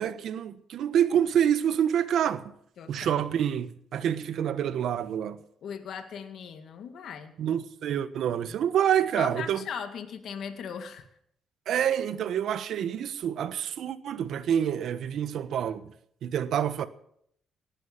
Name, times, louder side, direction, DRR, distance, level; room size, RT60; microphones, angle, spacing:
voice 1, 0.0-2.4 2.9-5.4 7.4-9.7 11.7-15.9 16.2-16.9, right 9 dB, 70° right, 1.2 m, -27 dB
voice 2, 2.8-3.2 5.6-7.3 9.2-11.1, left 7 dB, 70° left, 2.0 m, -38 dB
18.5 x 10.5 x 7.3 m
cardioid pair, 90°, 0 cm